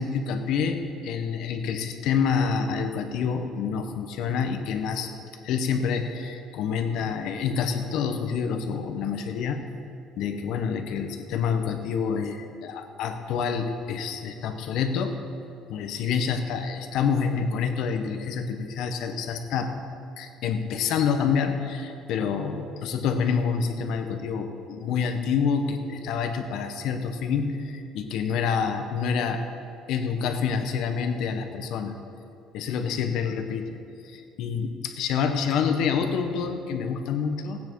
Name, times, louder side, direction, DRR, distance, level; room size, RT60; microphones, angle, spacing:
voice 1, 0.0-5.2 5.4-9.6 10.2-15.2 15.7-19.7 20.2-29.4 29.9-31.9 32.5-33.8 34.0-37.6, left 6 dB, 70° left, 6 dB, 1.1 m, -27 dB
16.0 x 9.4 x 4.7 m, 2.6 s
cardioid pair, 145°, 0 cm